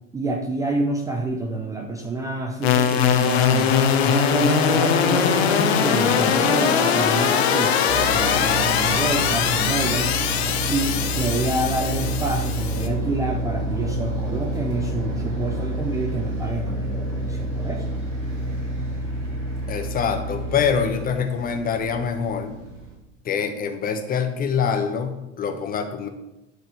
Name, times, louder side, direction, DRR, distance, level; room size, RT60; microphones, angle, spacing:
voice 1, 0.1-7.8 8.1-10.2 10.7-17.9, right 2 dB, 10° right, 2 dB, 0.6 m, -27 dB
sound 1, 2.6-12.9, left 7 dB, 55° left, 1.2 m, -21 dB
sound 2, 7.9-22.9, right 1 dB, 75° right, 3.1 m, -28 dB
voice 2, 19.7-22.6 23.2-26.1, left 6 dB, 25° left, 6 dB, 1.2 m, -25 dB
11.0 x 4.3 x 6.7 m, 0.94 s
figure-of-eight pair, 85°, 38 cm